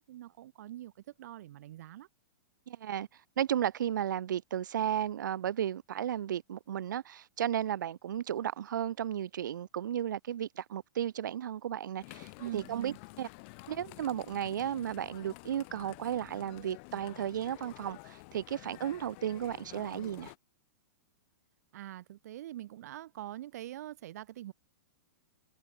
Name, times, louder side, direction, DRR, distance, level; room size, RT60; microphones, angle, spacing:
voice 1, 0.0-2.1 12.4-13.0 21.7-24.5, right 13 dB, 60° right, 4.6 m, -44 dB
voice 2, 2.7-13.3 13.7-20.3, right 10 dB, 80° right, 1.0 m, -34 dB
sound 1, 12.0-20.4, left 32 dB, 40° left, 5.5 m, -50 dB
supercardioid pair, 160°, 10 cm